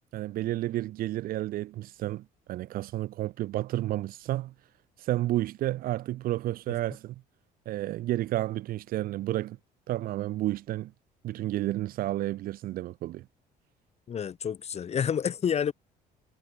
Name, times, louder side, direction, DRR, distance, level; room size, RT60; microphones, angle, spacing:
voice 1, 0.1-4.5 5.0-7.2 7.7-9.6 9.9-10.9 11.2-13.2, right 15 dB, 60° right, 0.4 m, -31 dB
voice 2, 14.1-15.7, left 8 dB, 40° left, 1.1 m, -29 dB
cardioid pair, 110°, 17 cm